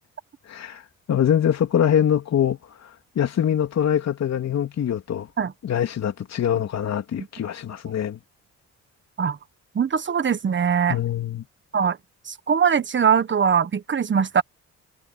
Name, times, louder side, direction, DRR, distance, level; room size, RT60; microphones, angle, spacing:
voice 1, 0.5-0.8 1.1-2.9 3.1-5.3 5.6-8.2 10.9-11.4, left 9 dB, 60° left, 3.2 m, -23 dB
voice 2, 9.7-11.0 11.7-12.0 12.3-14.4, right 7 dB, 40° right, 1.4 m, -21 dB
cardioid pair, 90°, 30 cm